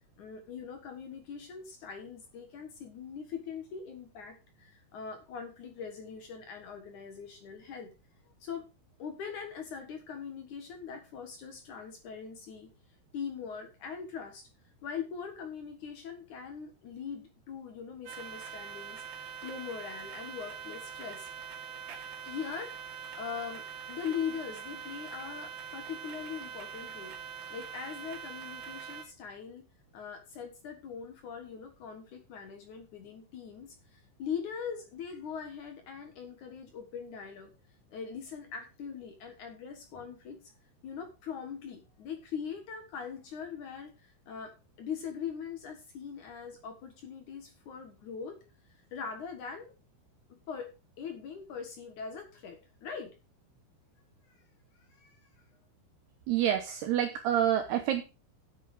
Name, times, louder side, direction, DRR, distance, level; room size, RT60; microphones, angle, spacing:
voice 1, 0.2-7.9 8.4-8.7 9.0-12.7 13.1-14.5 14.8-21.3 21.7-21.8 22.2-29.6 29.9-37.5 37.9-40.5 40.8-44.5 44.8-48.4 48.9-49.7 50.5-53.1 54.3-54.4 54.8-55.2, left 7 dB, 70° left, 6 dB, 1.9 m, -41 dB
sound 1, 18.1-29.1, right 7 dB, 60° right, 3.6 m, -43 dB
voice 2, 56.3-58.0, right 10 dB, 80° right, 6 dB, 2.4 m, -27 dB
10.0 x 8.1 x 5.0 m, 0.30 s
omnidirectional pair, 5.9 m